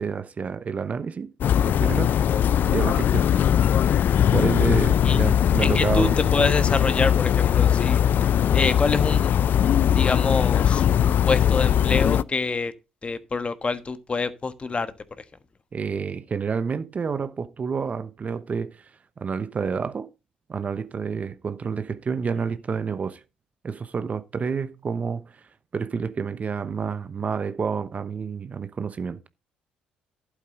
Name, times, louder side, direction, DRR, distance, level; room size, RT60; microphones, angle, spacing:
voice 1, 0.0-1.3 1.6-2.1 2.6-3.3 4.3-6.2 15.7-20.1 20.5-23.2 23.6-25.4 25.7-29.2, right 5 dB, 40° right, 0.9 m, -29 dB
sound 1, 1.4-12.2, left 9 dB, 55° left, 0.4 m, -20 dB
voice 2, 5.6-8.0 8.5-9.3 9.9-12.7 13.0-14.9 15.2-15.3, left 4 dB, 30° left, 1.3 m, -26 dB
11.5 x 8.4 x 3.8 m
hypercardioid pair, 55°, 4 cm